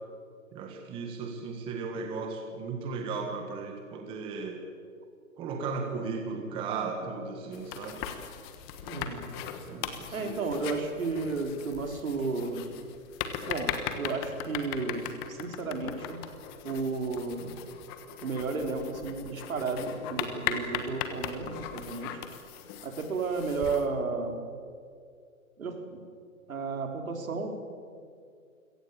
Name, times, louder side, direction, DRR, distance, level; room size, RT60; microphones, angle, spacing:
voice 1, 0.5-4.6 5.4-8.0 9.6-10.4 22.8-22.9, right 4 dB, 10° right, 3 dB, 1.6 m, -36 dB
sound 1, 7.5-23.9, left 9 dB, 15° left, 1.2 m, -39 dB
voice 2, 8.9-9.3 10.1-12.7 13.5-16.2 16.6-17.6 18.2-22.2 22.8-24.5 25.6-26.0 26.5-27.5, right 4 dB, 70° right, 5 dB, 4.6 m, -33 dB
28.0 x 17.5 x 8.8 m, 2.2 s
hypercardioid pair, 160°, 43 cm